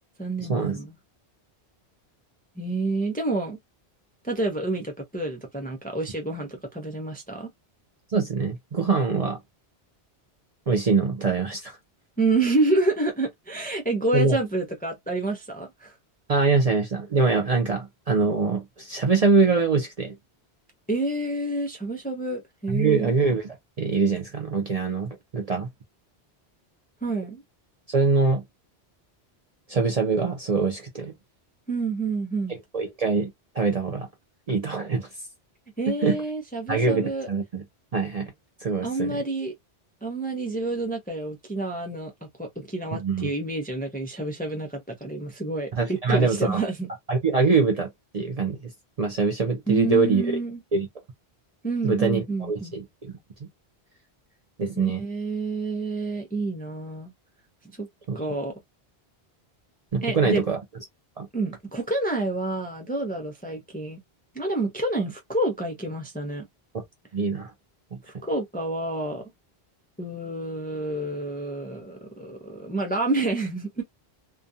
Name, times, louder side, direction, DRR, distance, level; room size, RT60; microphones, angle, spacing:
voice 1, 0.2-1.0 2.6-3.6 4.2-7.5 12.2-15.9 20.9-23.1 27.0-27.4 31.7-32.6 35.8-37.3 38.8-39.5 40.0-42.1 42.4-46.9 49.7-50.6 51.6-52.8 54.7-57.1 57.8-57.9 58.1-58.5 60.0-60.4 61.3-64.0 64.3-66.4 68.2-69.2 70.0-73.8, right 2 dB, 10° left, 0.5 m, -28 dB
voice 2, 8.1-9.4 10.7-11.8 14.1-14.4 16.3-20.2 22.7-25.7 27.9-28.4 29.7-31.1 32.7-33.3 33.5-34.1 34.5-35.1 36.0-36.2 36.7-37.6 37.9-38.3 38.6-39.2 43.0-43.3 45.7-46.6 47.1-47.9 48.1-48.6 49.0-50.2 50.7-50.9 51.8-53.1 54.6-55.0 58.1-58.2 59.9-60.6 61.2-61.3 66.7-66.8 67.1-67.5 67.9-68.0, right 4 dB, 45° right, 0.6 m, -23 dB
2.4 x 2.2 x 2.6 m
omnidirectional pair, 1.1 m